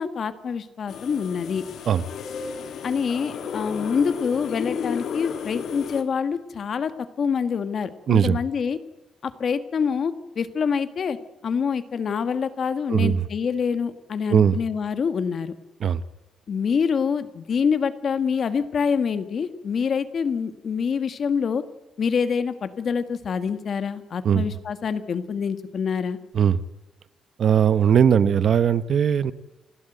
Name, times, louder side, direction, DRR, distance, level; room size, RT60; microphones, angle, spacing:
voice 1, 0.0-1.6 2.8-6.9 7.2-8.8 9.2-11.2 11.4-15.5 16.5-21.6 22.0-26.2, left 6 dB, 45° left, 1.6 m, -26 dB
sound 1, 0.9-6.0, left 7 dB, 65° left, 2.3 m, -33 dB
voice 2, 8.1-8.4 12.9-13.2 14.3-14.6 15.8-16.0 24.2-24.5 26.3-26.6 27.4-29.3, right 8 dB, 50° right, 0.9 m, -19 dB
29.5 x 12.5 x 9.2 m
cardioid pair, 140°, 0 cm